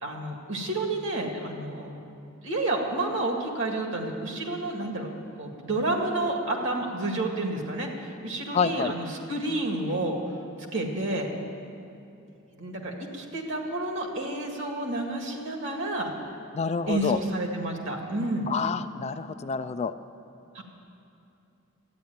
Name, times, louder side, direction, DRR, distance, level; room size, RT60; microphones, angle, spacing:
voice 1, 0.0-2.0 2.4-5.1 5.4-10.2 10.7-11.3 12.6-16.1 16.9-18.5 20.5-20.6, right 2 dB, 60° right, 2 dB, 2.0 m, -30 dB
voice 2, 8.5-8.9 16.5-17.2 18.5-19.9, left 5 dB, 30° left, 11 dB, 0.3 m, -28 dB
12.5 x 9.7 x 9.2 m, 2.7 s
head